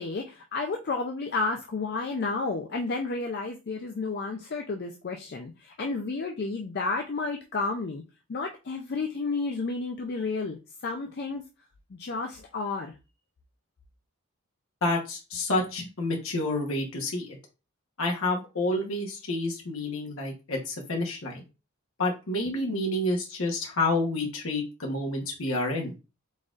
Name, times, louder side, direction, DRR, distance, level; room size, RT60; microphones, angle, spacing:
voice 1, 0.0-8.0 8.3-11.4 11.9-12.9, left 3 dB, 50° left, 0.4 m, -31 dB
voice 2, 14.8-17.4 18.0-21.4 22.0-25.9, left 2 dB, 75° left, 1.0 m, -29 dB
4.0 x 3.8 x 2.4 m
head